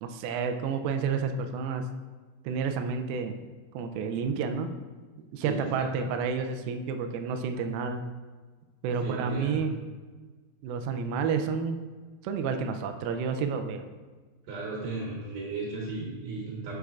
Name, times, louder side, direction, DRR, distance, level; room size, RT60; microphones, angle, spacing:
voice 1, 0.0-1.9 2.5-3.4 3.7-4.7 5.3-8.0 8.8-9.8 10.6-11.8 12.2-13.9, right 5 dB, 90° right, 6 dB, 2.4 m, -30 dB
voice 2, 5.4-6.1 9.0-9.7 14.5-16.8, right 3 dB, 70° right, -4 dB, 2.6 m, -35 dB
9.6 x 6.3 x 2.4 m, 1.4 s
omnidirectional pair, 4.3 m